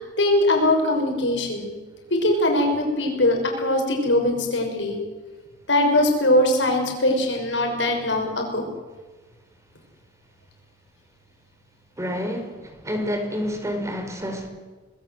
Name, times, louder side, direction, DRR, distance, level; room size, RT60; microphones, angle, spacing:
voice 1, 0.0-1.7 2.1-5.0 5.7-8.6, left 1 dB, 80° left, 2 dB, 6.4 m, -21 dB
voice 2, 12.0-12.5 12.8-14.5, equal, 15° right, 5 dB, 4.5 m, -28 dB
26.0 x 20.5 x 8.0 m, 1.3 s
head